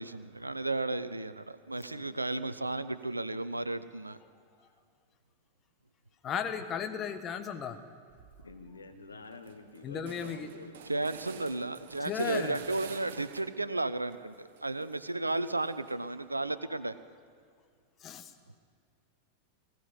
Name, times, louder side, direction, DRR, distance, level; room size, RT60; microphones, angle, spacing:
voice 1, 0.0-4.2 10.9-16.9, right 2 dB, 85° right, 13 dB, 0.5 m, -33 dB
voice 2, 6.2-7.8 9.8-10.5 12.0-12.6 18.0-18.3, left 7 dB, 30° left, 8 dB, 1.2 m, -35 dB
sound 1, 8.1-8.6 9.0-9.1 9.3-13.7 14.1-16.2, right 8 dB, 55° right, 0.9 m, -50 dB
voice 3, 8.4-10.8, left 3 dB, 75° left, 7 dB, 1.0 m, -48 dB
19.0 x 14.0 x 5.4 m, 2.2 s
figure-of-eight pair, 90°, 0 cm